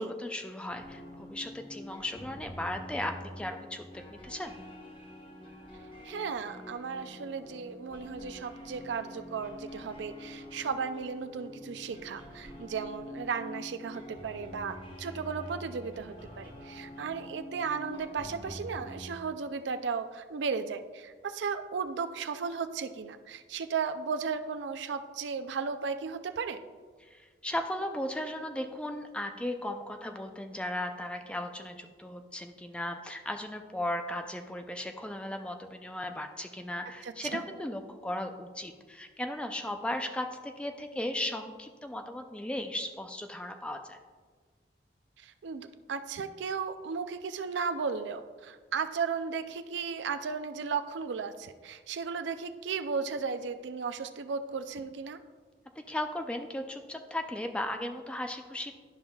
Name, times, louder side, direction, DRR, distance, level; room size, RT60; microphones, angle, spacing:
voice 1, 0.0-4.6 27.0-44.0 55.9-58.7, left 1 dB, 5° left, 5 dB, 0.4 m, -36 dB
sound 1, 0.7-19.2, left 1 dB, 30° left, 1.0 m, -46 dB
voice 2, 6.0-26.6 37.0-37.4 45.2-55.2, right 5 dB, 80° right, 9 dB, 0.4 m, -35 dB
11.5 x 5.4 x 2.3 m, 1.5 s
head